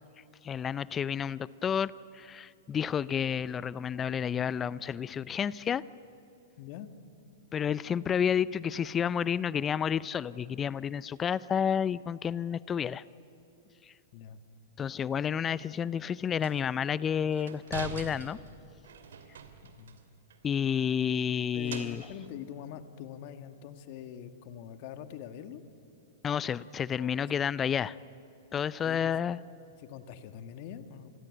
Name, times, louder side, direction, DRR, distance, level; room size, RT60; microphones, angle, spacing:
voice 1, 0.4-5.8 7.5-13.0 13.9-14.0 14.8-18.4 20.4-22.0 26.2-28.0 28.5-29.4, left 8 dB, 25° left, 20 dB, 0.6 m, -30 dB
voice 2, 6.6-6.9 14.1-14.4 19.6-20.0 20.6-20.7 21.5-25.6 27.0-27.2 28.5-29.1 29.8-31.1, left 9 dB, 50° left, 10 dB, 1.9 m, -44 dB
sound 1, 16.4-16.7 17.3-20.0 20.3-20.4 20.7-22.4, right 6 dB, 75° right, 2.6 m, -44 dB
28.0 x 21.5 x 9.3 m, 2.7 s
hypercardioid pair, 110°, 0 cm